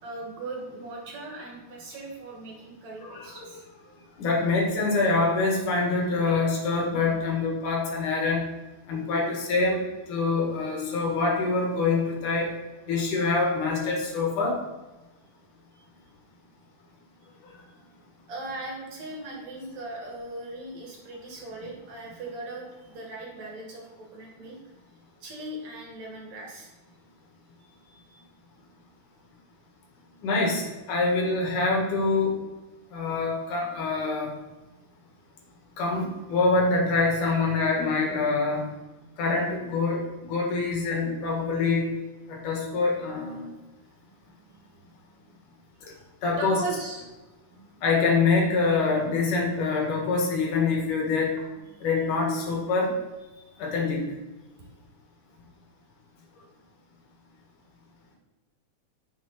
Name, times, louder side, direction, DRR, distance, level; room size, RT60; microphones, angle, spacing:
voice 1, 0.0-3.9 15.7-15.8 18.3-24.6 25.2-26.7 27.6-28.2 35.4-35.5 44.0-45.3 46.4-47.0 47.5-47.8 51.6-52.1 53.3-53.7 54.6-54.7, right 2 dB, 65° right, -1 dB, 3.0 m, -39 dB
voice 2, 4.2-8.4 8.9-9.8 10.1-12.5 12.9-14.6 30.2-32.4 32.9-34.3 35.8-38.7 39.2-40.0 40.3-41.9 42.3-43.5 46.2-46.6 47.8-51.3 51.8-53.0 53.6-54.0, left 3 dB, 80° left, 0 dB, 3.3 m, -25 dB
9.3 x 6.8 x 4.2 m, 1.1 s
omnidirectional pair, 3.5 m